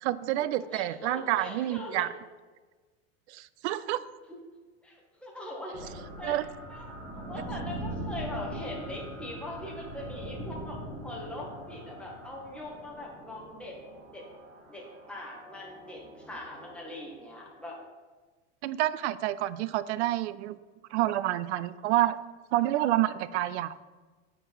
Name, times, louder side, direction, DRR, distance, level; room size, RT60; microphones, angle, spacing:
voice 1, 0.0-2.1 3.3-4.0 6.2-6.4 18.6-20.6 20.9-22.2 22.5-23.7, right 14 dB, 90° right, 16 dB, 0.5 m, -28 dB
voice 2, 0.7-2.0 4.8-6.4 6.7-6.8 7.1-13.7 14.1-14.2 14.7-17.8, left 1 dB, 5° left, -3 dB, 1.7 m, -41 dB
sound 1, 5.7-17.7, right 1 dB, 45° right, 2.2 m, -42 dB
9.1 x 4.6 x 4.1 m, 1.3 s
supercardioid pair, 125°, 33 cm